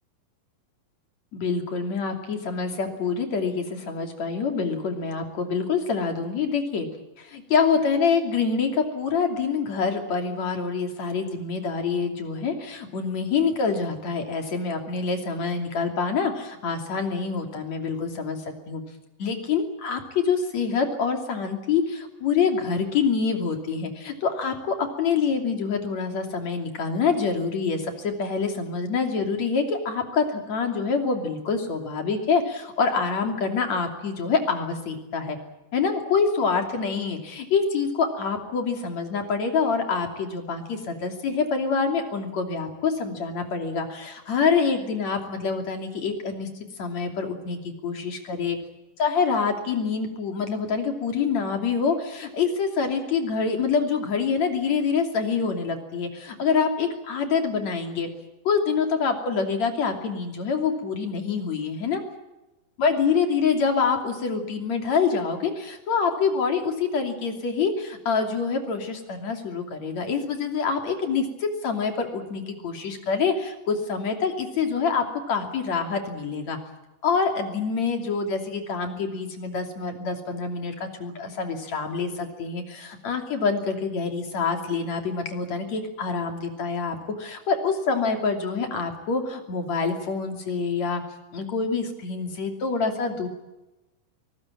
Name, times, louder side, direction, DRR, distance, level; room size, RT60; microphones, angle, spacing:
voice 1, 1.3-6.9 7.2-18.4 18.7-18.8 19.2-35.4 35.7-46.5 46.8-48.6 49.0-58.1 58.5-62.0 62.8-76.6 77.0-91.0 91.3-93.3, left 5 dB, 55° left, 5 dB, 4.0 m, -26 dB
24.0 x 19.5 x 8.7 m, 1.0 s
omnidirectional pair, 3.9 m